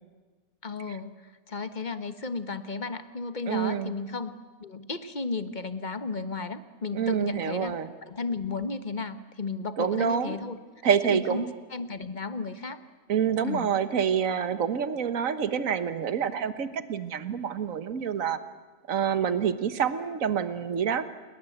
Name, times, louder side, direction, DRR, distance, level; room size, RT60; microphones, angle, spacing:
voice 1, 0.6-1.2 1.5-4.3 4.6-7.7 8.0-10.6 11.1-12.8 13.4-13.7, left 4 dB, 35° left, 11 dB, 1.4 m, -34 dB
voice 2, 3.5-4.0 6.9-7.9 9.8-10.4 10.8-11.5 13.1-18.4 18.9-21.0, right 8 dB, 70° right, 12 dB, 1.7 m, -27 dB
29.0 x 22.0 x 8.1 m, 1.4 s
omnidirectional pair, 1.5 m